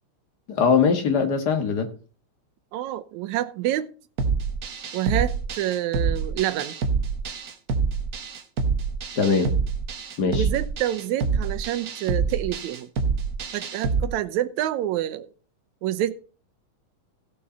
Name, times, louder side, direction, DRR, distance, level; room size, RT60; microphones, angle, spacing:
voice 1, 0.5-1.9 9.1-9.5 10.2-10.4, left 5 dB, 40° left, 1.7 m, -21 dB
voice 2, 2.7-3.9 4.9-6.8 10.3-12.9 13.5-15.3 15.8-16.2, right 13 dB, 80° right, 2.1 m, -27 dB
sound 1, 4.2-14.0, right 5 dB, 55° right, 1.0 m, -27 dB
17.0 x 6.5 x 4.1 m
omnidirectional pair, 3.3 m